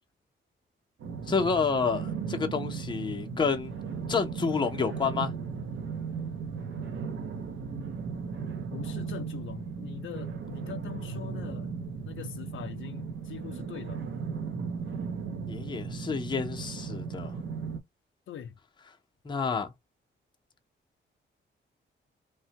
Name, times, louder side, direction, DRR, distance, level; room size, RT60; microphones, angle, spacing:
sound 1, 1.0-17.8, right 5 dB, 70° right, 0.7 m, -36 dB
voice 1, 1.3-3.7 4.1-5.3 15.5-17.4 19.2-19.7, left 5 dB, 25° left, 0.6 m, -29 dB
voice 2, 8.7-11.7 12.0-14.0 18.3-18.6, left 9 dB, 80° left, 0.6 m, -42 dB
3.0 x 2.1 x 2.8 m
wide cardioid pair, 125°, 20 cm